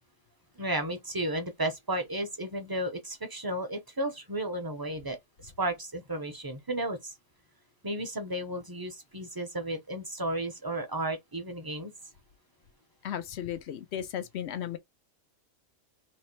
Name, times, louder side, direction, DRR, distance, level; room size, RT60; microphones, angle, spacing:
voice 1, 0.6-5.2 5.4-7.1 7.8-11.9, right 1 dB, 20° right, 0.7 m, -33 dB
voice 2, 13.0-14.8, left 10 dB, 65° left, 0.9 m, -35 dB
3.2 x 3.0 x 4.4 m
omnidirectional pair, 1.3 m